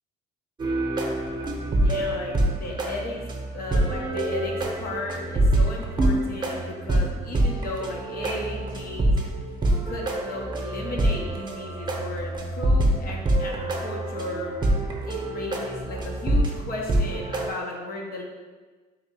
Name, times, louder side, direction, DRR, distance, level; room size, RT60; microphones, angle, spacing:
sound 1, 0.6-17.5, right 1 dB, 25° right, 0.7 m, -26 dB
voice 1, 1.7-3.2 3.5-9.1 9.8-18.2, left 2 dB, 60° left, -1 dB, 0.7 m, -35 dB
4.1 x 2.6 x 4.0 m, 1.4 s
cardioid pair, 110°, 17 cm